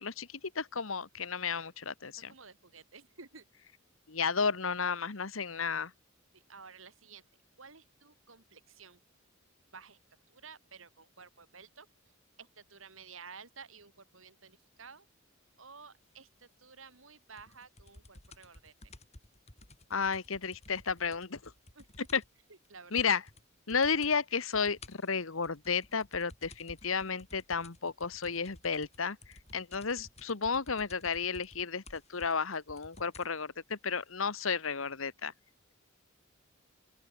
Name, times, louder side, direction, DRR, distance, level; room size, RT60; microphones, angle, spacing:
voice 1, 0.0-2.3 4.1-5.9 19.9-21.5 22.1-22.2 22.9-23.2 23.7-29.2 29.5-35.3, left 5 dB, 75° left, 1.4 m, -32 dB
voice 2, 2.3-3.5 6.3-7.3 7.6-9.0 9.7-10.0 10.3-11.9 12.4-15.1 15.6-18.9 21.8-21.9 22.5-23.0, right 5 dB, 70° right, 3.5 m, -53 dB
sound 1, 17.4-22.4 22.6-22.7 23.0-23.4 23.7-24.2 24.5-33.4 34.1-34.2, left 2 dB, 35° left, 4.5 m, -54 dB
open air
head